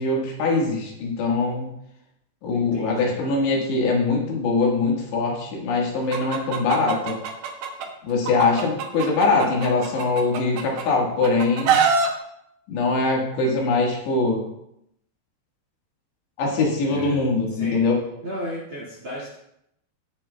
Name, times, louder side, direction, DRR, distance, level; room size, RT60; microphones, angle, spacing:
voice 1, 0.0-1.7 2.4-7.2 8.0-11.8 12.7-14.4 16.4-18.0, left 3 dB, 70° left, -1 dB, 3.7 m, -22 dB
voice 2, 2.5-3.2 16.9-17.2 17.5-17.8 18.2-19.4, equal, 45° right, -5 dB, 1.7 m, -34 dB
Chicken rooster, 6.1-7.9 8.2-10.8 11.2-12.1, right 6 dB, 80° right, 1.8 m, -24 dB
17.0 x 7.4 x 2.3 m, 0.79 s
omnidirectional pair, 5.2 m